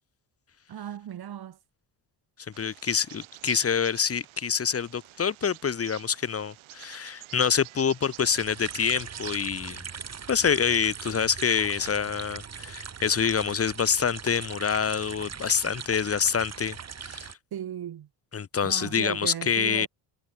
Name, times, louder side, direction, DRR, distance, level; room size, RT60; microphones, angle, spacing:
voice 1, 0.7-1.6 17.5-18.1 18.6-19.9, right 10 dB, 50° right, 5.2 m, -36 dB
Bird vocalization bird call bird song, 2.5-9.5, right 18 dB, 85° right, 3.2 m, -47 dB
voice 2, 2.6-9.8 10.3-16.8 17.0-17.3 18.3-19.9, left 7 dB, 30° left, 1.9 m, -26 dB
sound 1, 8.2-17.3, right 6 dB, 35° right, 4.3 m, -40 dB
cardioid pair, 125°, 47 cm